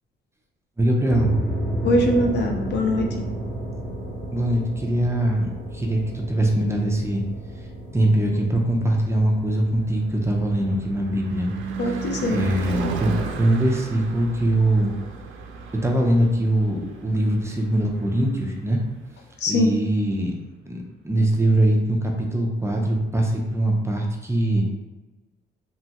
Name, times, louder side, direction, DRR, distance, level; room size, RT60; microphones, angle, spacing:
voice 1, 0.8-1.4 4.3-5.5 5.7-7.2 7.9-11.5 12.3-14.9 15.8-18.8 19.5-20.3 20.7-24.6, right 1 dB, 15° right, 0 dB, 0.5 m, -22 dB
sound 1, 1.1-16.3, right 1 dB, 15° left, 0.9 m, -34 dB
voice 2, 1.8-3.3 11.8-12.5 19.4-19.7, left 1 dB, 60° left, 1 dB, 0.6 m, -22 dB
Car passing by / Truck / Engine, 8.7-18.9, right 4 dB, 80° right, 0.4 m, -35 dB
3.0 x 2.2 x 2.8 m, 1.2 s
cardioid pair, 90°, 20 cm